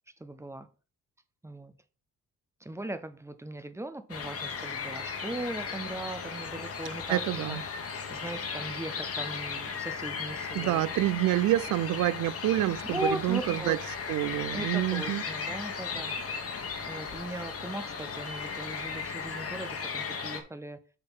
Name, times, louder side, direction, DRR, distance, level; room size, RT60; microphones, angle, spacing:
voice 1, 0.2-0.7 1.4-1.7 2.6-7.2 7.5-7.6 8.1-10.8 12.9-13.8 14.5-16.2 16.9-20.8, right 1 dB, 10° right, 0.8 m, -38 dB
sound 1, 4.1-20.4, left 5 dB, 50° left, 1.5 m, -36 dB
voice 2, 7.1-7.6 10.5-13.8 14.1-15.2, right 15 dB, 85° right, 0.5 m, -27 dB
6.5 x 3.9 x 6.1 m
cardioid pair, 90°, 30 cm